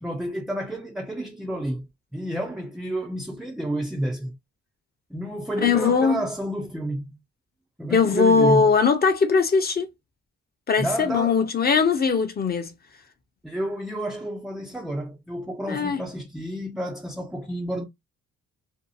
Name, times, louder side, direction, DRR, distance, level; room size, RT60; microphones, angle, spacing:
voice 1, 0.0-4.3 5.1-7.2 7.8-8.7 10.8-11.4 13.4-17.8, right 1 dB, ahead, 0.4 m, -30 dB
voice 2, 5.6-6.2 7.9-9.9 10.7-12.7 15.7-16.0, left 5 dB, 30° left, 0.7 m, -20 dB
2.7 x 2.3 x 2.6 m
cardioid pair, 90°, 30 cm